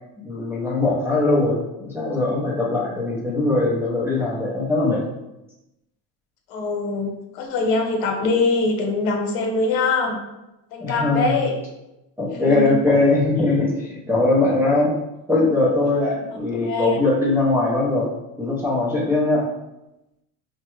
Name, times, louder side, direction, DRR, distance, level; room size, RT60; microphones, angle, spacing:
voice 1, 0.2-5.0 10.8-11.5 12.2-14.9 15.3-18.1 18.4-19.5, left 2 dB, 5° right, -5 dB, 0.5 m, -21 dB
voice 2, 6.5-10.2 10.7-11.6 12.3-12.8 16.3-17.0, left 3 dB, 80° left, 2 dB, 1.0 m, -23 dB
5.9 x 2.2 x 3.0 m, 0.94 s
cardioid pair, 175°, 38 cm